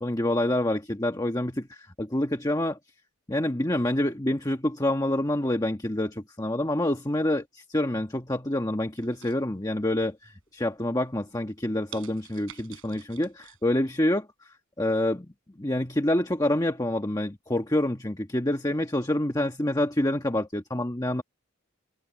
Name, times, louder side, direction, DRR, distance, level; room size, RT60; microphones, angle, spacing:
voice 1, 0.0-2.8 3.3-14.3 14.8-15.3 15.6-21.2, left 1 dB, 15° left, 1.3 m, -27 dB
sound 1, 9.0-10.0 10.4-10.8 11.3-11.4 11.9-13.6 14.0-14.1, right 8 dB, 65° right, 3.9 m, -48 dB
head